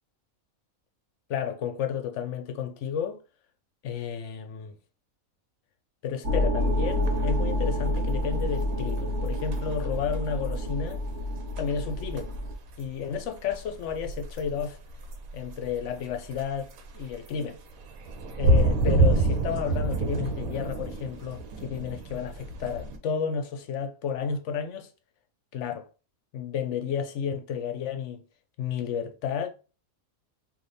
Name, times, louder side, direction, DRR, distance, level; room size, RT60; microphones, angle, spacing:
voice 1, 1.3-3.2 3.8-4.7 6.0-11.0 11.6-12.3 12.8-14.8 15.3-17.6 18.4-24.9 25.5-25.9 26.3-28.2 28.6-29.5, left 7 dB, 65° left, 0.9 m, -32 dB
sound 1, 6.2-12.5, left 1 dB, 55° right, 1.5 m, -28 dB
sound 2, 6.6-23.0, right 2 dB, 80° right, 1.1 m, -29 dB
3.3 x 2.6 x 4.0 m
omnidirectional pair, 1.5 m